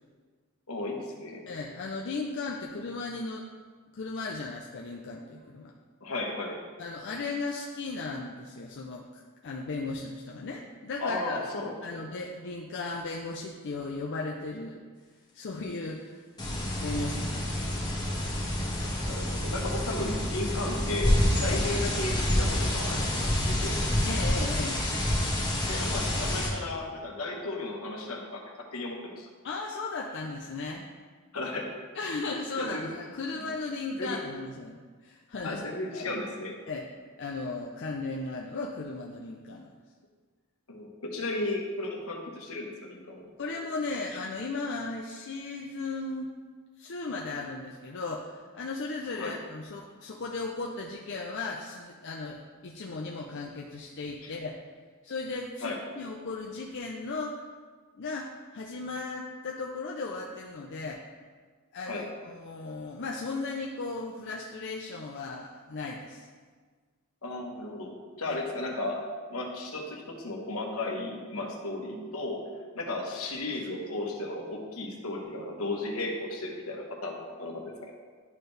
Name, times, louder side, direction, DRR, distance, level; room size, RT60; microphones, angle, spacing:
voice 1, 0.7-1.4 6.0-6.6 11.0-12.0 18.8-23.8 25.7-28.4 28.7-29.3 31.3-31.7 32.6-32.8 34.0-34.2 35.4-36.5 40.7-43.2 49.2-49.4 54.2-54.3 55.6-55.8 61.9-62.1 67.2-69.0 69.3-72.4 72.7-78.0, left 2 dB, 75° left, 0 dB, 1.2 m, -35 dB
voice 2, 1.5-3.4 3.9-5.7 6.8-11.4 11.8-14.8 15.3-16.3 16.7-18.0 21.4-21.6 24.0-24.8 29.4-30.9 31.9-35.6 35.9-36.2 36.7-36.9 37.2-39.7 43.4-46.3 46.8-54.5 55.0-57.4 57.9-61.0 61.7-66.3 68.3-68.4, left 3 dB, 55° left, -1 dB, 0.5 m, -36 dB
sound 1, 16.4-26.5, left 1 dB, 20° left, 1.7 m, -28 dB
11.0 x 4.5 x 3.3 m, 1.5 s
head